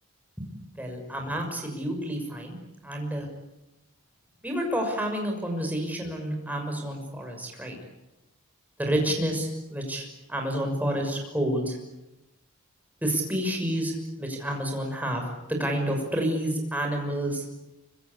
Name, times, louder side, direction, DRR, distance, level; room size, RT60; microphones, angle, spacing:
voice 1, 0.8-2.6 2.8-3.3 4.4-7.8 8.8-11.8 13.0-13.9 14.2-17.4, right 1 dB, 5° right, 2 dB, 6.3 m, -29 dB
25.5 x 25.5 x 8.4 m, 0.96 s
head